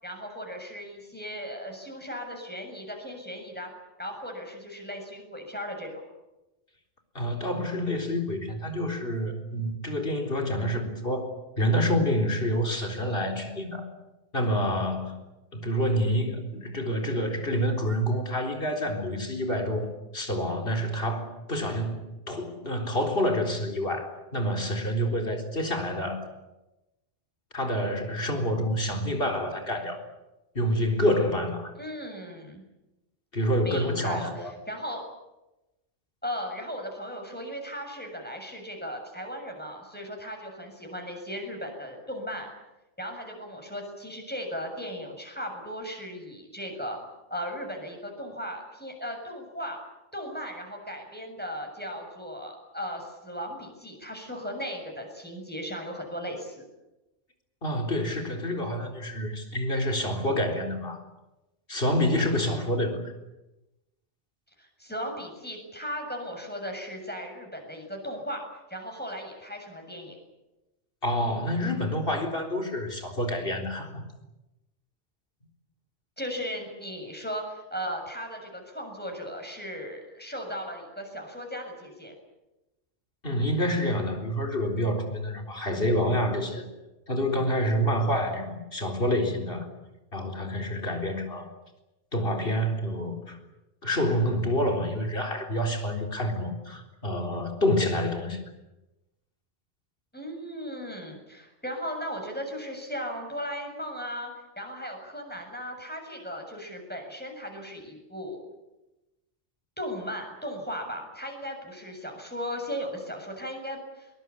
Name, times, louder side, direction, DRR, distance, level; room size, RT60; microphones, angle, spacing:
voice 1, 0.0-3.7 4.0-6.0 31.8-32.6 33.6-35.0 36.2-42.5 43.0-47.0 47.3-49.8 50.1-56.6 64.6-68.4 68.7-70.2 76.2-82.1 100.1-108.4 109.8-114.1, equal, 10° left, 2 dB, 7.1 m, -37 dB
voice 2, 7.1-13.8 14.3-15.2 15.5-26.2 27.5-30.0 30.5-31.7 33.3-34.5 57.6-61.0 61.7-63.1 71.0-74.0 83.2-86.6 87.1-89.7 90.1-91.5 92.1-93.4 93.8-98.4, equal, 55° left, 4 dB, 4.3 m, -28 dB
22.5 x 21.0 x 10.0 m, 1.0 s
omnidirectional pair, 1.2 m